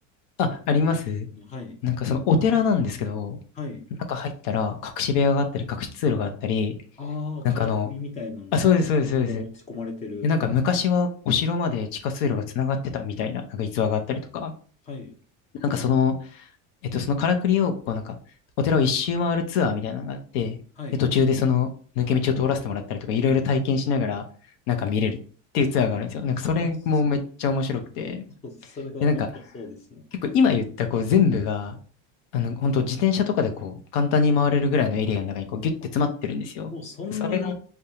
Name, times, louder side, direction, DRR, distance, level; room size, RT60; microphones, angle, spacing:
voice 1, 0.4-1.3 1.8-3.4 4.1-6.8 7.4-7.9 8.5-9.4 10.2-14.5 15.6-16.5 16.9-18.2 18.6-20.6 21.0-21.7 22.0-24.2 24.7-25.2 25.5-28.2 29.0-29.3 30.2-31.8 32.3-36.7 37.3-37.5, left 6 dB, 70° left, 6 dB, 0.7 m, -24 dB
voice 2, 1.3-1.8 3.5-3.8 7.0-8.7 9.0-10.3 14.1-14.2 14.9-15.2 20.8-21.0 26.4-26.7 28.3-30.3 36.7-37.5, left 4 dB, 20° left, 4 dB, 0.5 m, -36 dB
5.1 x 2.3 x 2.8 m, 0.42 s
cardioid pair, 165°, 36 cm